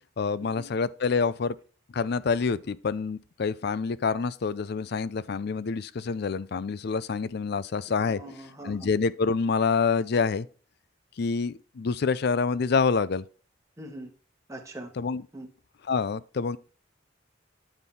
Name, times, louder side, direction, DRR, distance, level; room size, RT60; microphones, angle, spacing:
voice 1, 0.2-1.6 1.9-8.2 8.7-10.5 11.2-13.2 15.0-15.2 15.9-16.6, left 5 dB, 55° left, 0.4 m, -27 dB
voice 2, 8.0-8.9 13.8-14.1 14.5-14.9 15.3-15.5, right 1 dB, 15° right, 1.5 m, -42 dB
8.1 x 5.4 x 4.2 m
head